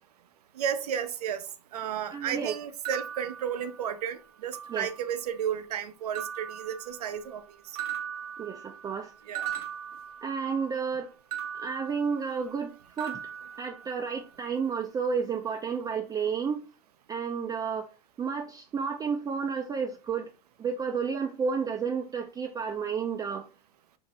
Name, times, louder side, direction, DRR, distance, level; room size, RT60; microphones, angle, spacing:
voice 1, 0.6-1.4 1.7-7.4 9.3-9.5, right 8 dB, 90° right, 0.4 m, -33 dB
voice 2, 2.1-2.5 4.7-4.9 8.4-9.1 10.2-11.1 11.5-13.2 13.6-16.6 17.1-17.9 18.2-20.3 20.6-23.5, right 6 dB, 20° right, 0.3 m, -31 dB
sound 1, 2.8-4.1 4.5-5.3 6.1-7.4 7.8-10.7 11.3-12.7 13.0-14.3, right 9 dB, 70° right, 0.8 m, -39 dB
2.6 x 2.5 x 3.2 m
hypercardioid pair, 95°, 20 cm